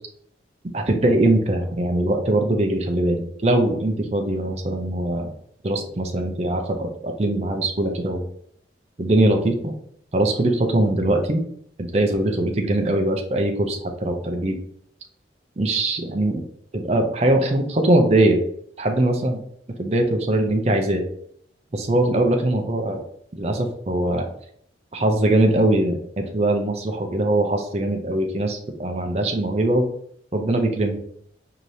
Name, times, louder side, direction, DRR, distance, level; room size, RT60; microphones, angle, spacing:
voice 1, 0.7-5.3 5.6-8.2 9.0-9.7 10.1-11.4 11.8-14.6 15.6-16.4 16.7-18.4 18.8-19.4 19.8-21.0 21.7-23.0 23.3-24.3 24.9-29.9 30.3-31.0, right 1 dB, 35° right, 3 dB, 0.5 m, -21 dB
4.8 x 2.8 x 2.7 m, 0.66 s
head